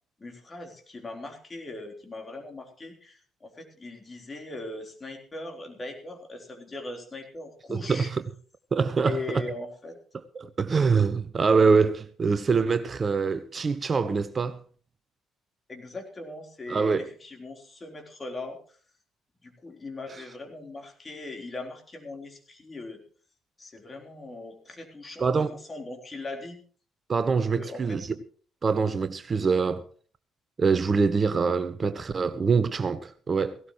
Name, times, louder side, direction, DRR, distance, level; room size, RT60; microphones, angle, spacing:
voice 1, 0.2-8.1 9.1-10.0 15.7-18.8 19.4-23.0 23.6-26.6 27.6-28.0, left 2 dB, 30° left, 3.8 m, -40 dB
voice 2, 7.7-8.2 8.7-9.4 10.4-14.6 16.7-17.1 20.1-20.2 25.2-25.5 27.1-28.2 28.6-29.9 30.6-33.6, right 5 dB, 35° right, 0.8 m, -24 dB
17.5 x 17.0 x 3.1 m
figure-of-eight pair, 45°, 0 cm